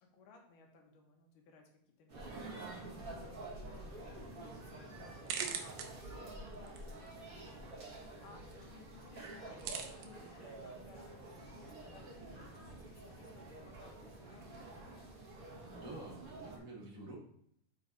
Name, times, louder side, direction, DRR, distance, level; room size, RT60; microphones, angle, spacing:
voice 1, 0.0-5.2 5.7-14.9, left 4 dB, 80° left, 1 dB, 2.5 m, -62 dB
sound 1, 2.1-16.6, right 2 dB, 70° right, 0.8 m, -49 dB
sound 2, 3.5-14.7, right 7 dB, 85° right, 2.3 m, -49 dB
voice 2, 15.6-17.2, right 2 dB, 40° right, -3 dB, 1.3 m, -49 dB
7.6 x 4.6 x 4.0 m, 0.69 s
omnidirectional pair, 3.8 m